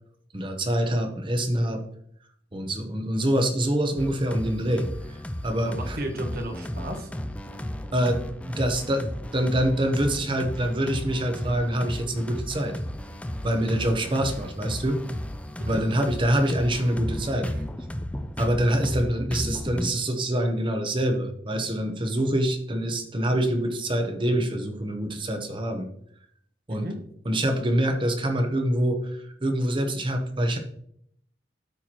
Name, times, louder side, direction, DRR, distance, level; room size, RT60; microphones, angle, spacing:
voice 1, 0.3-1.8 2.5-5.2 5.4-6.0 7.9-8.2 8.5-12.7 13.4-15.0 15.6-17.5 18.4-25.9 26.7-26.9 27.2-30.6, right 1 dB, 30° right, 5 dB, 0.9 m, -25 dB
sound 1, 4.0-19.9, equal, 5° left, 0.4 m, -34 dB
voice 2, 5.6-7.1 15.6-15.9 26.7-27.0, right 1 dB, 55° right, 4 dB, 1.3 m, -34 dB
13.0 x 4.6 x 3.0 m, 0.67 s
head